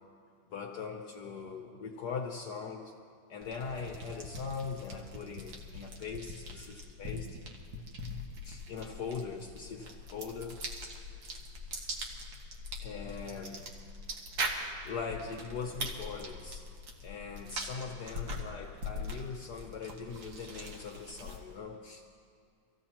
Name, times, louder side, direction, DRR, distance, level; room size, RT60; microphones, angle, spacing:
voice 1, 0.5-2.9 3.3-7.4 8.4-10.6 12.8-13.6 14.8-16.7 17.0-22.0, left 5 dB, 65° left, 2 dB, 1.3 m, -41 dB
sound 1, 3.4-21.6, equal, 70° right, 2.2 m, -42 dB
25.5 x 15.5 x 3.0 m, 2.3 s
omnidirectional pair, 2.1 m